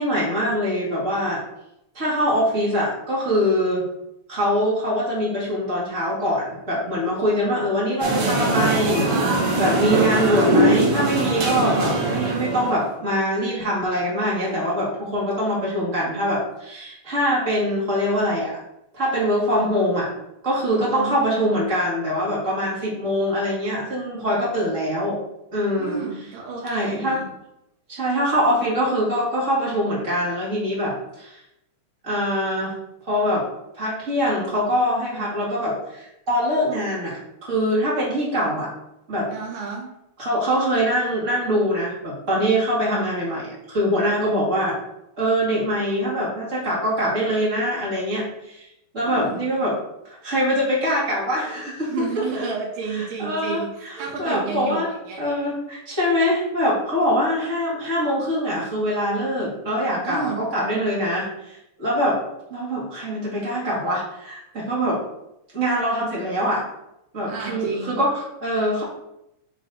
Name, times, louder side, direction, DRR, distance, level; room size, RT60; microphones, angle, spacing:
voice 1, 0.0-1.4 1.9-3.9 4.3-9.1 9.6-18.5 18.9-20.1 20.4-25.2 25.5-26.0 26.6-27.2 27.9-31.4 32.0-32.8 33.1-33.4 33.8-38.7 39.1-39.3 40.2-44.8 45.2-48.7 48.9-49.7 50.0-51.9 52.4-52.5 52.9-54.9 55.2-62.2 62.5-65.0 65.5-66.6 67.1-68.8, equal, 25° right, -7 dB, 1.9 m, -23 dB
sound 1, 8.0-12.8, right 2 dB, 55° right, 1.7 m, -21 dB
voice 2, 9.9-10.5 20.7-21.2 25.8-27.3 39.3-39.9 49.0-49.4 51.9-55.2 60.0-60.4 67.3-68.1, right 5 dB, 75° right, -3 dB, 3.1 m, -31 dB
8.1 x 3.3 x 4.0 m, 0.85 s
omnidirectional pair, 3.9 m